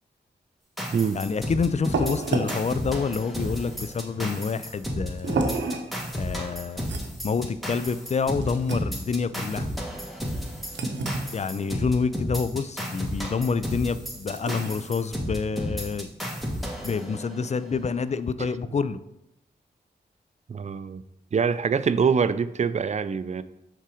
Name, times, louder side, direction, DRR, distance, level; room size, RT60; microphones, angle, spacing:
sound 1, 0.8-17.6, equal, ahead, 1.5 m, -33 dB
voice 1, 1.1-5.5 6.1-6.9 7.2-9.7 11.3-16.1 16.8-19.0, left 5 dB, 40° left, 14 dB, 0.4 m, -27 dB
sound 2, 1.3-16.2, right 3 dB, 90° right, 0.7 m, -35 dB
voice 2, 20.5-21.0 21.3-23.4, right 6 dB, 40° right, 14 dB, 0.4 m, -24 dB
5.5 x 3.7 x 4.9 m, 0.85 s
cardioid pair, 45°, 18 cm